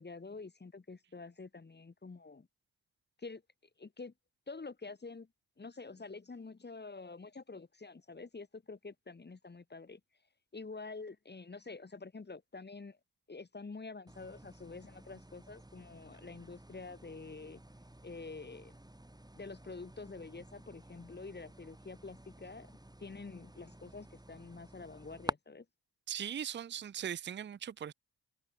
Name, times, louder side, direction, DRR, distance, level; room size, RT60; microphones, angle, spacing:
voice 1, 0.0-2.5 3.2-3.4 3.8-4.1 4.5-5.3 5.6-10.0 10.5-13.0 13.3-17.6 18.0-18.8 19.3-22.7 23.0-25.6, left 3 dB, 25° left, 1.3 m, -47 dB
sound 1, 14.1-25.3, right 1 dB, 10° right, 3.2 m, -50 dB
voice 2, 26.1-27.9, right 9 dB, 30° right, 0.5 m, -39 dB
supercardioid pair, 40°, 38 cm